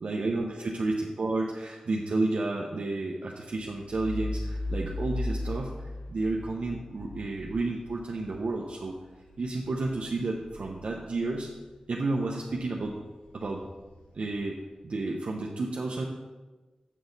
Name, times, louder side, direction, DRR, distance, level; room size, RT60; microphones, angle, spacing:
voice 1, 0.0-8.9 9.4-11.5 11.9-13.0 13.3-13.7 14.1-14.6 14.8-16.0, right 2 dB, 65° right, -2 dB, 0.7 m, -31 dB
sound 1, 3.5-11.8 12.1-14.7, left 1 dB, 75° left, 1.1 m, -39 dB
8.3 x 6.2 x 4.0 m, 1.2 s
wide cardioid pair, 90°, 2 cm